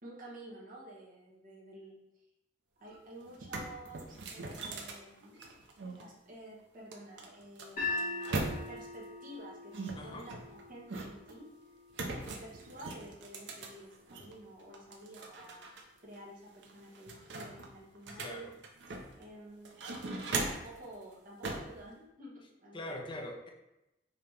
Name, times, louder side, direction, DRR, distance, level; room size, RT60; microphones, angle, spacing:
voice 1, 0.0-1.9 2.8-5.5 5.9-9.7 10.0-11.5 12.0-15.7 16.0-18.5 19.2-19.7 20.4-23.0, right 1 dB, 50° right, -5 dB, 1.2 m, -51 dB
sound 1, 2.9-3.0 3.3-6.0 6.9-8.9 9.7-11.3 11.9-14.3 14.7-15.8 16.1-16.2 16.6-19.2 19.6-20.8 21.4-21.8, right 3 dB, 70° right, 0.6 m, -40 dB
sound 2, 7.8-13.9, left 2 dB, 45° left, 1.6 m, -42 dB
voice 2, 10.0-10.3 12.0-12.3 18.1-18.5 22.7-23.5, left 1 dB, 25° left, 2 dB, 0.5 m, -43 dB
5.2 x 2.9 x 3.3 m, 0.92 s
head